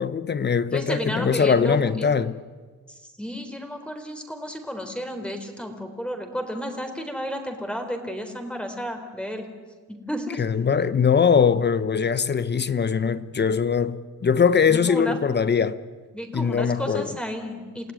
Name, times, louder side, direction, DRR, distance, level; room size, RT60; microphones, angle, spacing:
voice 1, 0.0-2.4 10.4-15.8 16.3-17.1, left 6 dB, 35° left, 1.0 m, -21 dB
voice 2, 0.7-1.8 2.9-9.5 9.9-10.4 14.7-15.2 16.1-17.9, equal, 5° left, 4.0 m, -32 dB
29.0 x 16.5 x 9.7 m
cardioid pair, 90°, 30 cm